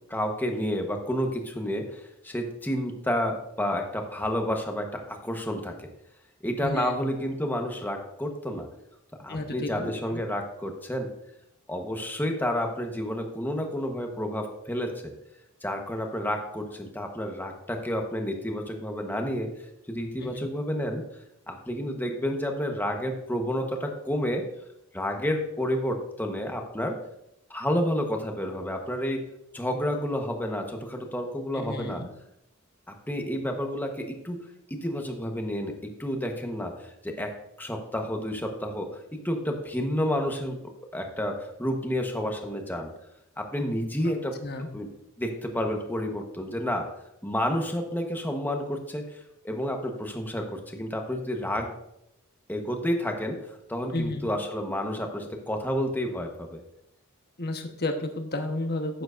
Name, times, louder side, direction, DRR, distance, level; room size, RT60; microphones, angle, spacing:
voice 1, 0.1-5.9 6.4-8.7 9.2-11.1 11.7-15.1 15.6-19.5 19.9-21.0 21.5-24.4 24.9-27.0 27.5-29.2 29.5-32.0 33.1-34.4 34.7-40.6 40.9-42.9 43.4-44.4 44.7-44.9 45.2-46.9 47.2-49.2 49.4-51.7 52.5-56.6, equal, 10° left, 3 dB, 1.1 m, -30 dB
voice 2, 6.6-6.9 9.3-10.2 20.2-20.5 31.5-32.1 44.0-44.1 44.4-44.7 53.9-54.3 57.4-59.0, left 2 dB, 50° left, 5 dB, 1.1 m, -32 dB
11.5 x 9.1 x 2.6 m, 0.82 s
head